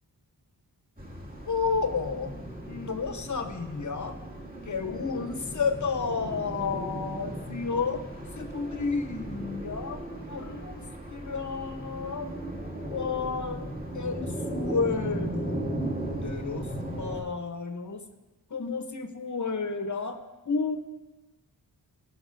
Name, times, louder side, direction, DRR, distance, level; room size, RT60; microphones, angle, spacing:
sound 1, 1.0-17.2, right 1 dB, 20° right, 2.1 m, -37 dB
voice 1, 1.5-2.4 2.6-4.2 4.7-8.0 8.3-10.0 10.3-10.8 11.1-12.5 12.9-13.7 13.9-15.7 16.2-18.0 18.5-20.2 20.5-20.8, left 5 dB, 45° left, 7 dB, 0.9 m, -31 dB
18.0 x 6.0 x 2.6 m, 1.2 s
wide cardioid pair, 55°, 43 cm